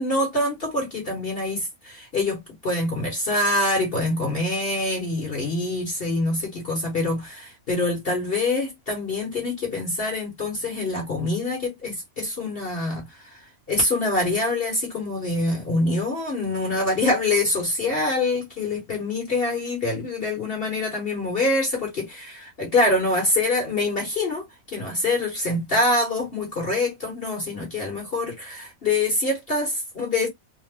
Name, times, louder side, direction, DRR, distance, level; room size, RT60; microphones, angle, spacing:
voice 1, 0.0-30.3, left 2 dB, 45° left, 1.0 m, -25 dB
2.8 x 2.1 x 3.3 m
omnidirectional pair, 1.6 m